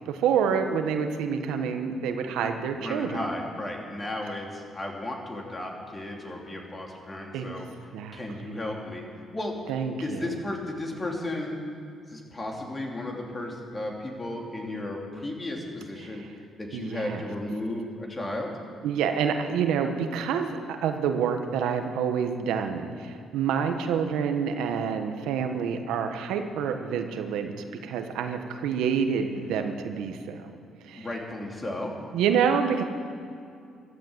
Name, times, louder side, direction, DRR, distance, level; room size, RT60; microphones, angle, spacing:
voice 1, 0.0-3.2 7.3-7.6 7.9-8.2 9.7-10.3 16.0-16.4 16.7-17.2 18.8-27.5 27.8-30.5 30.8-31.1 32.1-32.8, right 7 dB, 90° right, 6 dB, 1.3 m, -28 dB
voice 2, 2.7-7.7 8.1-9.1 9.3-9.6 10.0-11.6 12.1-16.2 16.6-18.5 30.9-31.9, left 1 dB, 25° left, 0 dB, 2.9 m, -34 dB
14.0 x 12.5 x 8.1 m, 2.3 s
cardioid pair, 95°, 0 cm